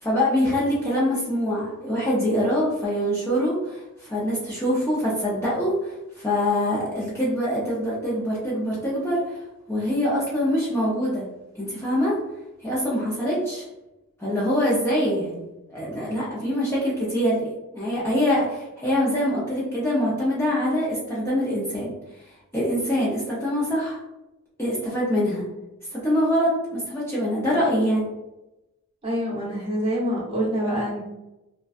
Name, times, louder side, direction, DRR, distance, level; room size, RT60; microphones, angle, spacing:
voice 1, 0.0-9.4 9.7-11.2 11.5-12.2 12.6-13.6 14.2-15.4 15.7-21.9 22.5-24.0 24.6-25.4 25.9-28.1, equal, 10° left, -7 dB, 0.4 m, -24 dB
voice 2, 29.0-31.0, equal, 25° right, -6 dB, 0.8 m, -26 dB
2.5 x 2.1 x 2.3 m, 0.98 s
head